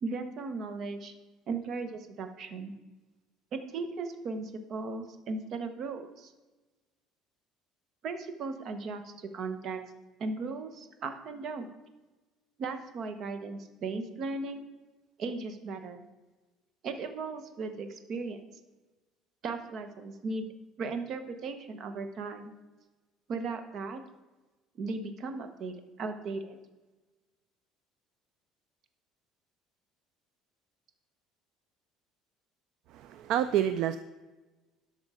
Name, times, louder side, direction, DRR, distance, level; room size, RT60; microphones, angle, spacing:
voice 1, 0.0-1.1 1.5-2.7 3.5-6.3 8.0-9.8 10.2-11.7 12.6-14.7 15.2-16.0 16.8-18.4 19.4-20.5 20.8-22.5 23.3-24.0 24.8-26.6, right 3 dB, 45° right, 8 dB, 1.1 m, -37 dB
voice 2, 32.9-34.0, right 11 dB, 60° right, 12 dB, 0.4 m, -28 dB
11.5 x 6.2 x 5.0 m, 1.2 s
cardioid pair, 145°, 0 cm